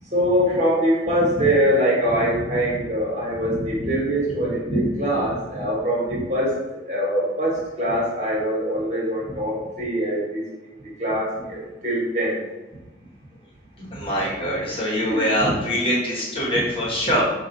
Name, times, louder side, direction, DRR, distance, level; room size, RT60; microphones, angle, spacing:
voice 1, 0.1-6.5 6.9-10.4 11.0-12.3 15.0-15.2, equal, 45° right, -5 dB, 1.4 m, -23 dB
voice 2, 2.3-2.9 3.3-3.9 4.4-4.9 6.1-6.2 9.3-9.4 13.9-17.2, equal, 30° left, -5 dB, 1.1 m, -25 dB
4.8 x 2.4 x 3.9 m, 1.1 s
head